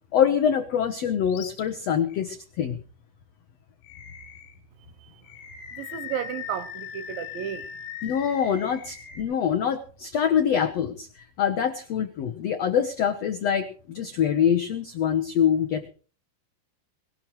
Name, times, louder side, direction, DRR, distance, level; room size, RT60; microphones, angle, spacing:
voice 1, 0.1-2.8 8.0-15.9, left 8 dB, 85° left, 1.4 m, -25 dB
Animal, 1.3-1.6 2.1-2.2 3.8-4.6 5.2-9.2, left 9 dB, 70° left, 3.8 m, -40 dB
voice 2, 5.8-7.7, right 10 dB, 75° right, 2.4 m, -33 dB
20.5 x 18.5 x 3.2 m
omnidirectional pair, 4.6 m